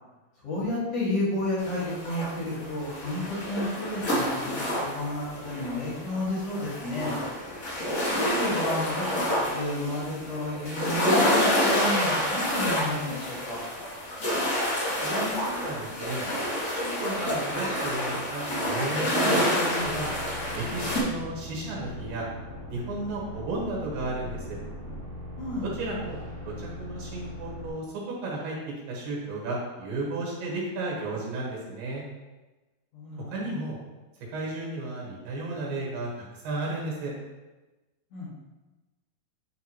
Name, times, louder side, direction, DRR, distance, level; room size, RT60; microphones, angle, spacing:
voice 1, 0.4-7.2 8.1-13.6 25.4-25.7 32.9-33.3 38.1-38.3, left 1 dB, 50° left, -10 dB, 2.4 m, -31 dB
sound 1, 1.6-21.0, left 1 dB, 80° left, 0.6 m, -28 dB
voice 2, 15.0-16.3 16.7-20.1 20.5-22.3 22.7-24.6 25.6-26.2 26.4-28.6 28.9-32.0 33.3-33.8 34.3-37.1, right 2 dB, 75° right, -3 dB, 3.1 m, -34 dB
sound 2, 19.8-27.7, left 1 dB, 35° right, 0.8 m, -40 dB
10.0 x 3.5 x 2.9 m, 1.1 s
omnidirectional pair, 4.2 m